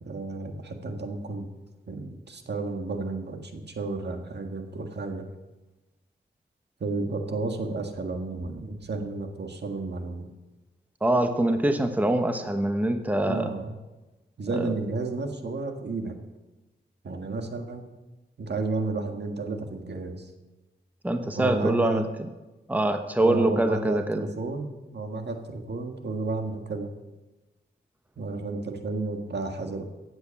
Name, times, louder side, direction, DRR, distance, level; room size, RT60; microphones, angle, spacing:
voice 1, 0.0-1.5 1.9-5.2 6.8-10.3 13.3-13.7 14.4-16.2 17.0-17.8 18.4-20.3 21.4-22.1 23.2-26.9 28.2-29.8, right 3 dB, 60° right, 5 dB, 1.7 m, -32 dB
voice 2, 11.0-13.5 14.5-14.7 21.0-22.0 22.7-24.3, right 1 dB, 10° right, 7 dB, 1.0 m, -24 dB
15.5 x 8.0 x 7.1 m, 1.1 s
wide cardioid pair, 95°, 20 cm